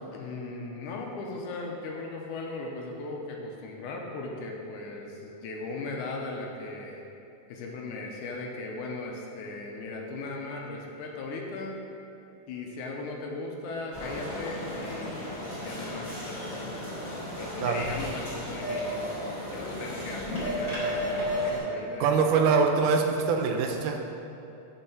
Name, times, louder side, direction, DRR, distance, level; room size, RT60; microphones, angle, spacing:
voice 1, 0.1-7.0 7.5-11.8 12.5-16.8 17.4-19.0 19.5-22.2 23.0-23.1, left 3 dB, 80° left, 0 dB, 2.2 m, -38 dB
sound 1, 13.9-21.6, equal, 25° left, 1.6 m, -34 dB
voice 2, 22.0-24.0, right 5 dB, 90° right, 4 dB, 2.2 m, -24 dB
5.5 x 5.4 x 5.9 m, 2.8 s
omnidirectional pair, 3.6 m